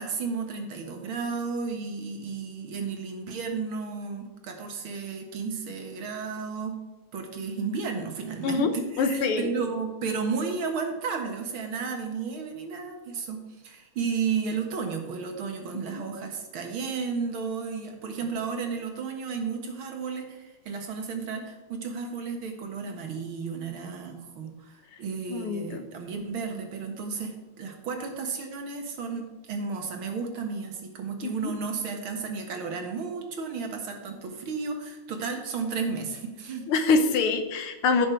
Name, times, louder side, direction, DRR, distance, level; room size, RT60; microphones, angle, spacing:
voice 1, 0.0-6.7 7.1-36.7, right 5 dB, 70° right, 3 dB, 2.3 m, -33 dB
voice 2, 9.0-9.5 15.9-16.0 25.3-25.8 31.2-31.5 36.7-38.1, left 4 dB, 90° left, 7 dB, 2.0 m, -25 dB
15.0 x 6.6 x 4.6 m, 1.2 s
omnidirectional pair, 2.3 m